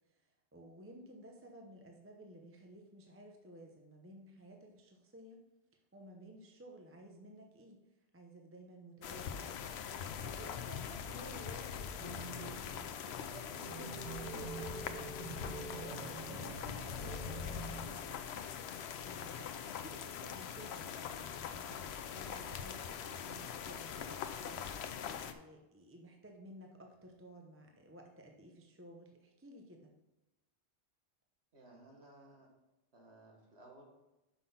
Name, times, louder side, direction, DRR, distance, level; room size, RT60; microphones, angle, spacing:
voice 1, 0.0-5.4 5.9-7.8 8.1-12.7 13.0-18.0 18.5-29.9, right 1 dB, 15° right, 2 dB, 0.7 m, -55 dB
sound 1, 9.0-25.3, left 8 dB, 75° left, 0.8 m, -43 dB
sound 2, 12.0-18.5 18.8-18.9 20.6-21.3 22.3-23.1, right 4 dB, 45° right, 1.0 m, -47 dB
voice 2, 31.5-32.5 32.9-33.8, right 2 dB, 80° right, 0 dB, 1.9 m, -58 dB
5.8 x 5.6 x 5.7 m, 0.99 s
omnidirectional pair, 1.1 m